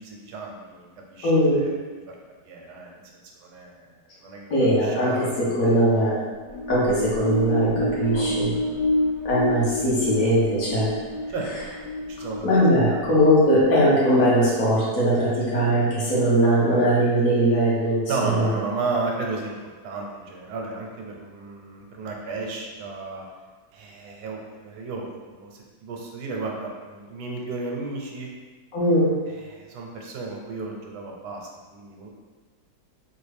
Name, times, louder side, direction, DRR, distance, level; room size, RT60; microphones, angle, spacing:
voice 1, 0.0-1.8 2.4-3.0 3.4-3.9 4.2-5.8 7.5-7.7 8.0-8.7 9.0-9.1 11.3-11.5 11.8-12.5 12.8-13.0 18.1-19.5 19.8-23.3 23.7-25.5 25.8-28.3 29.3-32.1, right 3 dB, 85° right, 0 dB, 1.2 m, -34 dB
voice 2, 1.2-1.6 4.5-5.1 5.5-6.2 6.7-8.5 9.2-10.9 12.4-18.5 28.7-29.1, equal, 60° left, -8 dB, 1.6 m, -20 dB
sound 1, 6.4-14.0, left 1 dB, 25° left, 0.4 m, -28 dB
3.7 x 2.2 x 3.3 m, 1.4 s
omnidirectional pair, 1.7 m